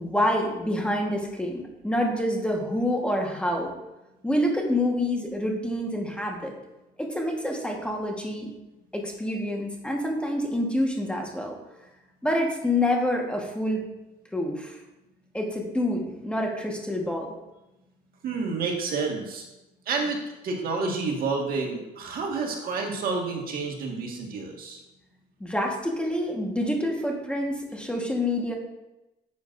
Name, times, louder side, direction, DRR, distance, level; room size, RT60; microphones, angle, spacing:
voice 1, 0.0-3.7 4.2-6.5 7.0-8.5 8.9-11.6 12.2-13.8 14.3-14.8 15.3-17.4 25.4-28.5, left 1 dB, 5° left, 1 dB, 1.4 m, -27 dB
voice 2, 18.2-19.4 19.9-24.8, right 4 dB, 60° right, 1 dB, 1.8 m, -29 dB
10.0 x 7.7 x 2.6 m, 0.96 s
cardioid pair, 110°, 17 cm